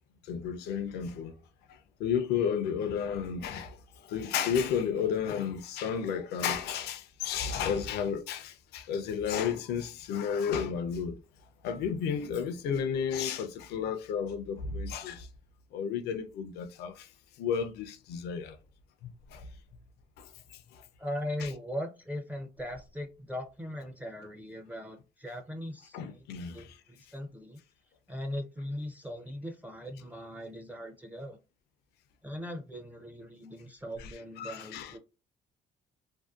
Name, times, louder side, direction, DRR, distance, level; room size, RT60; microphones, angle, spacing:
voice 1, 0.2-1.3 1.7-11.2 11.6-15.3 15.7-17.1 17.4-18.6 19.0-19.5 20.2-20.8 21.4-21.5 25.9-26.8 34.0-34.1 34.4-35.0, left 7 dB, 75° left, 0.5 m, -32 dB
voice 2, 21.0-26.2 26.5-27.6 28.1-31.4 32.2-35.0, left 1 dB, 10° right, 0.4 m, -39 dB
2.6 x 2.1 x 2.3 m
cardioid pair, 110°, 17 cm